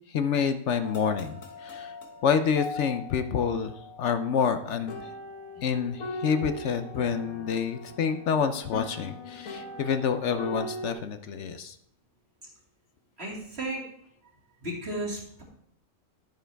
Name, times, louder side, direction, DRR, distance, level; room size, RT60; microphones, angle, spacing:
voice 1, 0.1-1.3 1.6-1.9 2.2-5.1 5.6-11.8, left 6 dB, 65° left, 9 dB, 0.9 m, -28 dB
sound 1, 0.8-10.9, left 2 dB, 85° left, 1.6 m, -40 dB
voice 2, 13.2-13.8 14.6-15.4, right 1 dB, 50° right, -3 dB, 2.9 m, -34 dB
11.5 x 9.1 x 3.4 m, 0.69 s
omnidirectional pair, 1.3 m